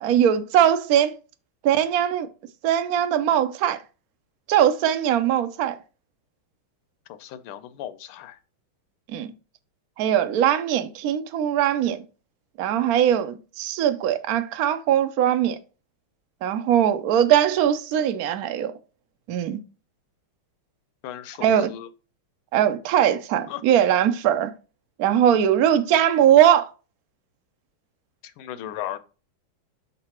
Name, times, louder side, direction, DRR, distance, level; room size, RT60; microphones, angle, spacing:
voice 1, 0.0-1.2 1.6-2.3 2.6-3.8 4.5-5.8 9.1-9.3 10.0-12.0 12.6-15.6 16.4-18.7 19.3-19.6 21.4-21.7 22.5-24.5 25.0-26.7, right 10 dB, 80° right, 0.8 m, -20 dB
voice 2, 7.1-8.4 21.0-21.9 23.5-23.6 28.4-29.0, left 11 dB, 85° left, 1.6 m, -36 dB
6.6 x 3.9 x 4.3 m
omnidirectional pair, 2.3 m